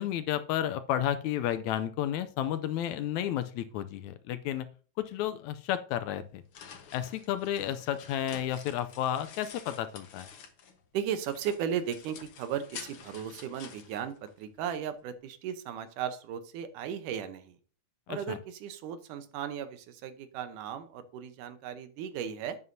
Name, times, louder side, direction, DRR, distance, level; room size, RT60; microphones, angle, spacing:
voice 1, 0.0-4.7 5.0-6.4 6.9-10.3 18.1-18.4, left 11 dB, 80° left, 12 dB, 1.8 m, -32 dB
sound 1, 6.1-10.8 11.2-14.7, left 6 dB, 55° left, 1.7 m, -49 dB
voice 2, 10.9-17.6 18.1-22.6, right 8 dB, 85° right, 10 dB, 2.4 m, -36 dB
11.0 x 9.5 x 2.7 m, 0.39 s
omnidirectional pair, 3.6 m